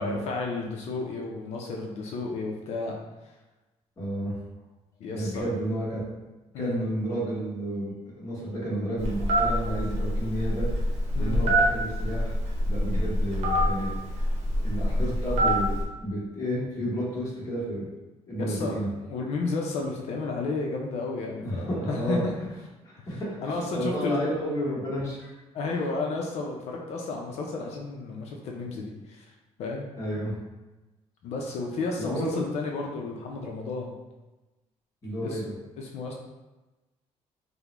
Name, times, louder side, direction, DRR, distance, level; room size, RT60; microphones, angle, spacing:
voice 1, 0.0-3.0 5.0-5.5 6.5-6.8 11.1-11.5 18.4-18.8 19.0-22.3 23.1-24.3 25.5-29.3 29.6-29.9 31.2-33.9 35.2-35.4 35.8-36.1, left 3 dB, 65° left, 0 dB, 0.4 m, -32 dB
voice 2, 4.0-4.3 5.1-6.1 6.6-10.7 11.2-12.3 12.6-13.9 14.6-17.9 18.3-18.9 21.4-22.2 22.8-25.3 30.0-30.4 32.0-32.4 35.0-35.5, equal, 25° left, -7 dB, 1.0 m, -31 dB
Telephone, 9.0-15.8, equal, 65° right, 0.8 m, -25 dB
3.6 x 2.0 x 2.9 m, 1.1 s
cardioid pair, 180°, 12 cm